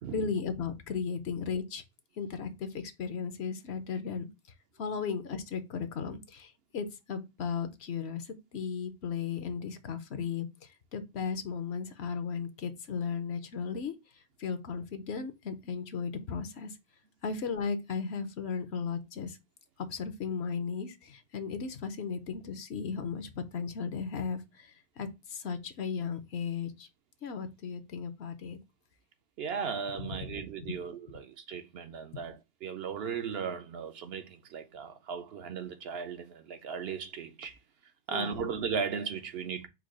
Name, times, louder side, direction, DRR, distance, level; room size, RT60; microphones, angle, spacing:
voice 1, 0.1-1.8 2.2-4.3 4.8-13.9 14.4-16.8 17.2-19.4 19.8-26.9 27.2-28.6 30.0-30.7 38.1-38.5, left 6 dB, 65° left, 0.9 m, -36 dB
voice 2, 29.4-37.6 38.1-39.7, right 6 dB, 65° right, 0.7 m, -36 dB
4.6 x 2.3 x 4.8 m
omnidirectional pair, 1.2 m